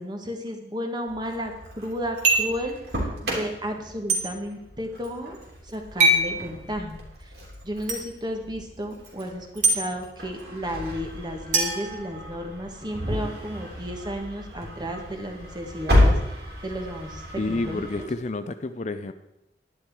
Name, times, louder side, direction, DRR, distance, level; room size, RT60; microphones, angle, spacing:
voice 1, 0.0-2.8 3.2-5.4 5.7-7.0 7.2-7.3 7.6-16.2 16.6-18.1, equal, 25° right, 3 dB, 1.5 m, -33 dB
Engine starting, 1.1-18.0, left 1 dB, 70° right, 3.3 m, -31 dB
sound 1, 2.2-2.6 4.1-4.2 6.0-6.3 7.9-8.0 9.6-9.8 11.5-12.6, right 2 dB, 45° right, 2.5 m, -22 dB
voice 2, 17.4-19.1, left 2 dB, 40° left, 10 dB, 0.5 m, -29 dB
11.0 x 10.5 x 4.7 m, 0.90 s
head